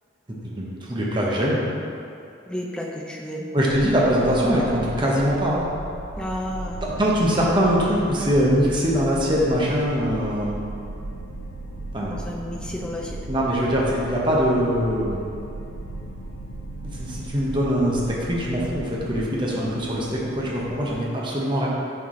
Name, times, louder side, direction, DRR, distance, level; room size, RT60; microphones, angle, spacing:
voice 1, 0.6-1.6 3.5-5.7 6.8-10.6 11.9-12.2 13.3-15.2 16.8-21.7, equal, 25° right, -4 dB, 0.7 m, -22 dB
voice 2, 2.5-3.5 6.2-6.8 12.0-13.2, left 1 dB, 5° left, -1 dB, 0.4 m, -32 dB
sound 1, 3.7-19.2, right 2 dB, 90° right, 0.5 m, -37 dB
sound 2, 6.4-21.0, left 1 dB, 75° left, 0.5 m, -41 dB
5.5 x 4.6 x 3.7 m, 2.5 s
head